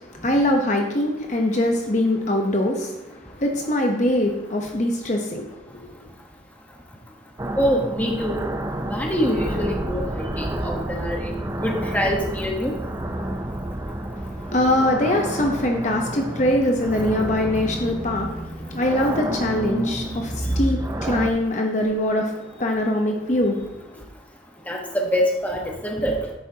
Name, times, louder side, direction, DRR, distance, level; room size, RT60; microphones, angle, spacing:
voice 1, 0.0-6.0 14.2-24.0, left 1 dB, 40° left, 2 dB, 0.9 m, -23 dB
sound 1, 7.4-21.3, right 1 dB, 15° right, 0.5 m, -29 dB
voice 2, 7.6-8.4 8.9-12.7 20.5-20.6 24.7-26.2, equal, 10° left, 0 dB, 1.1 m, -25 dB
9.9 x 8.2 x 2.8 m, 0.96 s
head